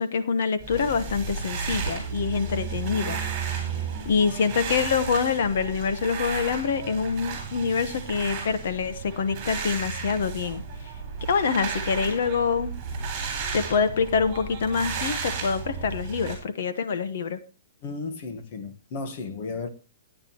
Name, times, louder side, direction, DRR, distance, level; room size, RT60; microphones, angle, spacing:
voice 1, 0.0-3.2 4.0-10.6 11.2-12.7 13.5-17.4, left 5 dB, 50° left, 1.0 m, -25 dB
sound 1, 0.6-16.3, right 5 dB, 20° right, 3.9 m, -33 dB
voice 2, 17.8-19.7, left 3 dB, 30° left, 1.3 m, -34 dB
18.5 x 9.1 x 2.9 m
hypercardioid pair, 180°, 0 cm